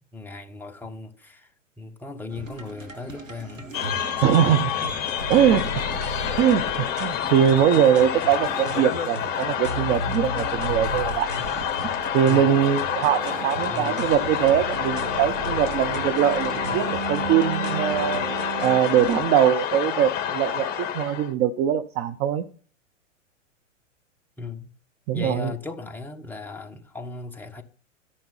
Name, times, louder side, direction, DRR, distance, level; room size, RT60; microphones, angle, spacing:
voice 1, 0.1-1.5 1.8-3.7 4.2-4.6 12.3-12.7 13.7-14.1 24.4-24.7 25.1-27.6, left 4 dB, 5° left, 1.3 m, -37 dB
sound 1, 2.3-19.3, right 1 dB, 80° right, 2.0 m, -37 dB
sound 2, 3.7-21.3, left 9 dB, 25° left, 1.8 m, -28 dB
voice 2, 4.2-4.7 5.3-5.7 6.4-11.3 12.1-18.3 18.6-22.4 25.1-25.5, right 9 dB, 15° right, 0.6 m, -22 dB
sound 3, 10.3-18.8, right 6 dB, 65° right, 0.8 m, -36 dB
14.0 x 10.5 x 5.5 m
figure-of-eight pair, 110°, 38 cm